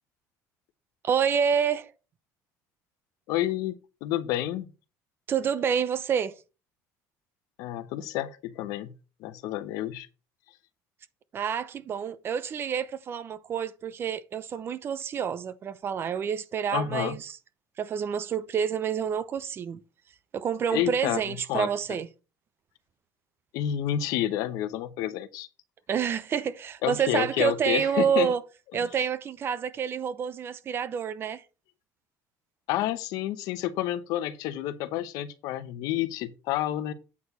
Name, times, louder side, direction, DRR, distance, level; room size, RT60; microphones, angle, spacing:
voice 1, 1.0-1.9 5.3-6.4 11.3-17.4 17.8-19.8 20.3-22.1 25.9-28.4 28.7-31.4, right 7 dB, 35° right, 0.7 m, -28 dB
voice 2, 3.3-3.7 4.0-4.7 7.6-8.9 9.2-10.1 16.7-17.2 20.7-21.7 23.5-25.5 26.8-28.3 32.7-36.9, left 12 dB, 75° left, 0.9 m, -29 dB
8.4 x 4.6 x 5.3 m
cardioid pair, 130°, 6 cm